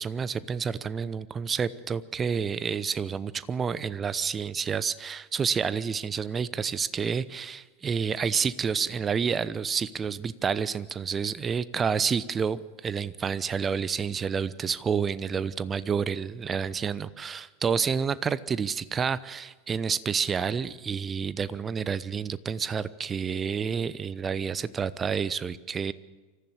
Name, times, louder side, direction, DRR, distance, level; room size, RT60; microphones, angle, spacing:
voice 1, 0.0-25.9, right 6 dB, 20° right, 18 dB, 0.7 m, -29 dB
25.0 x 14.5 x 7.5 m, 1.3 s
figure-of-eight pair, 85°, 0 cm